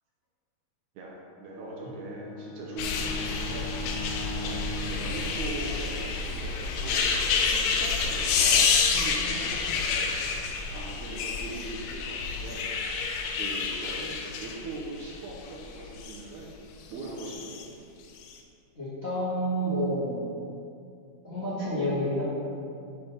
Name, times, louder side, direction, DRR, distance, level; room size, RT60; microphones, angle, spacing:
voice 1, 1.0-3.8 4.4-4.6 4.9-7.0 7.5-9.9 10.7-12.7 13.4-16.6 16.9-17.6, right 2 dB, 75° right, -3 dB, 1.9 m, -40 dB
Bowed string instrument, 1.4-6.0, left 1 dB, 75° left, 2.0 m, -40 dB
sound 1, 2.8-16.2 17.1-17.6 18.2-18.3, left 5 dB, 90° left, 2.3 m, -28 dB
voice 2, 18.7-20.2 21.2-22.2, equal, 50° left, -11 dB, 0.7 m, -29 dB
9.7 x 3.6 x 3.9 m, 2.5 s
omnidirectional pair, 3.8 m